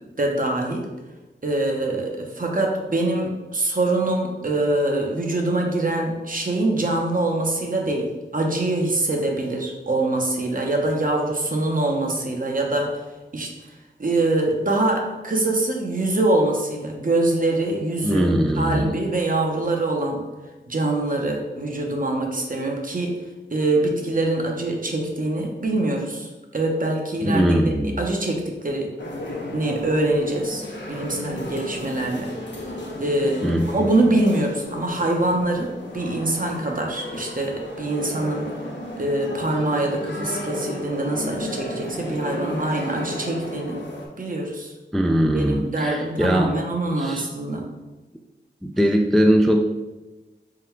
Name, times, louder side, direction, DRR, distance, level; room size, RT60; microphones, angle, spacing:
voice 1, 0.2-0.9 1.4-13.0 13.3-13.5 14.0-18.3 18.6-20.2 20.7-23.2 23.5-28.9 29.5-32.3 33.0-38.5 39.0-43.8 44.2-44.7 45.3-47.7, right 2 dB, 45° right, 1 dB, 0.8 m, -24 dB
voice 2, 18.0-19.0 27.2-28.0 33.4-33.7 44.9-46.5 46.9-47.3 48.6-49.6, equal, ahead, 4 dB, 0.3 m, -20 dB
sound 1, 29.0-44.1, left 1 dB, 65° left, 0.8 m, -34 dB
3.7 x 2.2 x 4.4 m, 1.1 s
cardioid pair, 40°, 20 cm